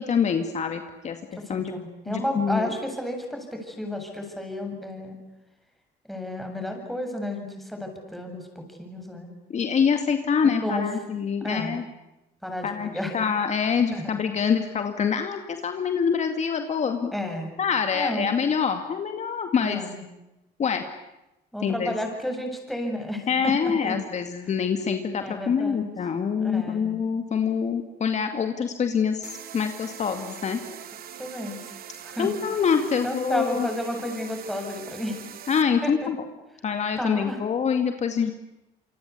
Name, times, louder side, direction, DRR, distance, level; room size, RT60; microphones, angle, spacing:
voice 1, 0.0-1.7 2.1-2.7 9.5-11.8 12.6-17.1 17.6-19.8 20.6-20.8 21.6-21.9 23.3-30.6 32.2-33.7 35.5-36.2 36.6-38.3, left 6 dB, 45° left, 6 dB, 2.2 m, -25 dB
voice 2, 1.3-5.2 6.1-9.3 10.4-10.9 11.4-11.8 12.4-13.1 13.9-14.2 17.1-17.6 17.9-18.3 19.6-20.0 21.5-24.0 25.2-25.9 26.4-27.0 31.2-31.7 32.0-32.4 33.0-35.2 35.8-36.1 37.0-37.4, left 1 dB, ahead, 3 dB, 7.6 m, -32 dB
sound 1, 29.2-35.6, right 10 dB, 60° right, 2.6 m, -42 dB
27.5 x 24.5 x 8.5 m, 0.94 s
cardioid pair, 110°, 17 cm